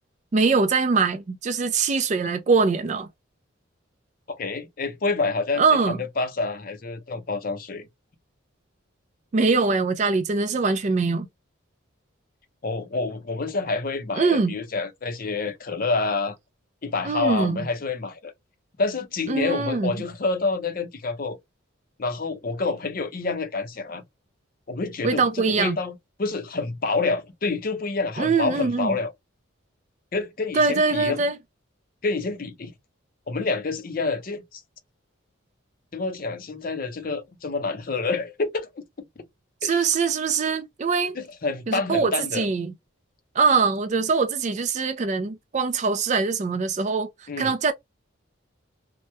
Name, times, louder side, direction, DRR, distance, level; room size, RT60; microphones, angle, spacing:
voice 1, 0.3-3.1 5.6-6.0 9.3-11.3 14.2-14.5 17.0-17.6 19.3-20.0 25.0-25.8 28.2-29.0 30.5-31.4 39.6-41.1 41.7-42.7 43.4-47.7, right 4 dB, 35° right, 0.3 m, -23 dB
voice 2, 4.3-7.9 12.6-16.4 16.8-18.3 18.8-21.4 22.0-24.0 24.7-29.1 30.1-31.2 32.0-32.7 33.3-34.6 35.9-38.8 39.6-39.9 41.1-42.5 47.3-47.5, left 3 dB, 45° left, 0.5 m, -28 dB
2.9 x 2.1 x 3.2 m
head